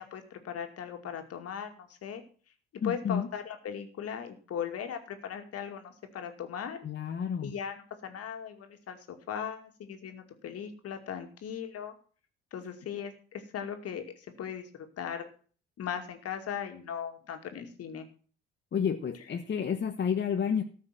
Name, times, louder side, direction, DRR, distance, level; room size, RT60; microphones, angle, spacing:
voice 1, 0.0-2.2 2.8-6.8 7.4-11.9 12.5-14.0 14.4-15.3 15.8-18.1, left 8 dB, 55° left, 6 dB, 2.4 m, -38 dB
voice 2, 2.8-3.3 6.8-7.5 18.7-20.6, left 7 dB, 40° left, 6 dB, 1.1 m, -30 dB
14.0 x 5.8 x 7.6 m, 0.42 s
hypercardioid pair, 60°, 29 cm